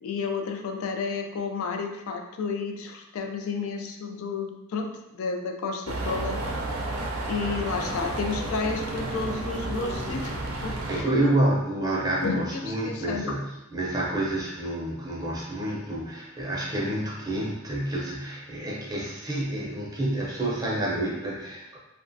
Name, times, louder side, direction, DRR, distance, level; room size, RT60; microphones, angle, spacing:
voice 1, 0.0-6.4 7.3-11.3 12.2-13.3, left 4 dB, 80° left, 4 dB, 0.3 m, -31 dB
sound 1, 5.9-11.0, right 2 dB, 80° right, 0.5 m, -31 dB
voice 2, 10.9-21.8, right 1 dB, 20° right, -5 dB, 0.5 m, -28 dB
2.9 x 2.1 x 2.6 m, 0.94 s
head